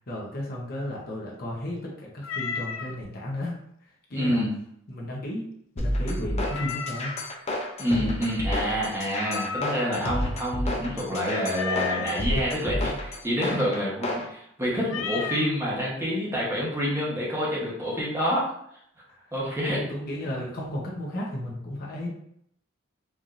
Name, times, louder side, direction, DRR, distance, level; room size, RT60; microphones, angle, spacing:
voice 1, 0.0-4.4 4.9-5.4 5.7-7.2 19.1-19.3 19.7-22.1, left 1 dB, 50° left, -3 dB, 0.9 m, -34 dB
Meow, 2.2-3.0 6.4-7.2 9.2-10.0 11.5-12.2 14.8-15.5, left 6 dB, 80° left, 0.4 m, -33 dB
voice 2, 4.1-4.5 7.8-18.5 19.3-19.8, equal, 15° right, -6 dB, 1.1 m, -27 dB
sound 1, 5.8-14.3, left 1 dB, 35° left, 0.6 m, -30 dB
4.6 x 2.7 x 2.5 m, 0.70 s
head